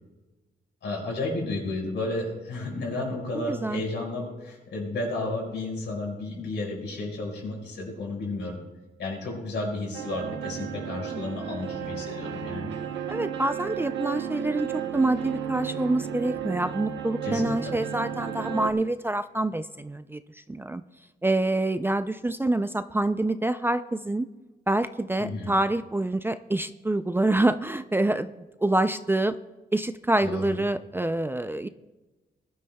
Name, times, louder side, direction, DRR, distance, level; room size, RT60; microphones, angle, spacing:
voice 1, 0.8-8.6 9.0-12.7 17.2-17.7 25.2-25.5 30.2-30.6, left 2 dB, 85° left, -1 dB, 4.9 m, -32 dB
voice 2, 3.3-3.8 13.1-20.2 20.5-20.8 21.2-24.3 24.7-28.3 28.6-29.4 29.7-31.7, right 2 dB, 10° right, 11 dB, 0.3 m, -26 dB
sound 1, 9.9-18.7, right 9 dB, 85° right, 0.8 m, -33 dB
21.0 x 12.0 x 2.2 m, 1.1 s
wide cardioid pair, 125°, 18 cm